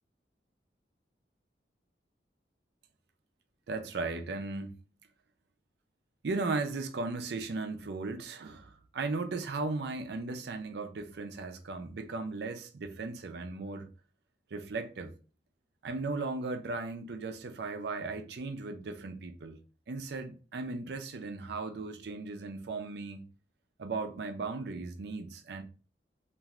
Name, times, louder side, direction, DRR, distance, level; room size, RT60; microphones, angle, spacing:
voice 1, 3.7-4.7 6.2-13.9 14.5-15.1 15.8-19.6 19.9-23.3 23.8-25.6, right 3 dB, 65° right, 0.4 m, -36 dB
3.0 x 2.5 x 2.4 m
head